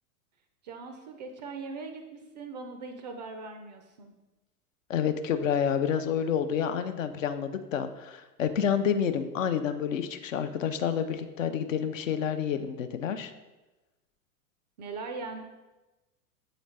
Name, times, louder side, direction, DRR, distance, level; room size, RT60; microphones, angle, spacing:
voice 1, 0.6-4.1 14.8-15.4, right 4 dB, 30° right, 6 dB, 0.4 m, -40 dB
voice 2, 4.9-13.3, left 8 dB, 55° left, 10 dB, 0.6 m, -29 dB
7.5 x 4.0 x 3.2 m, 1.1 s
figure-of-eight pair, 90°, 46 cm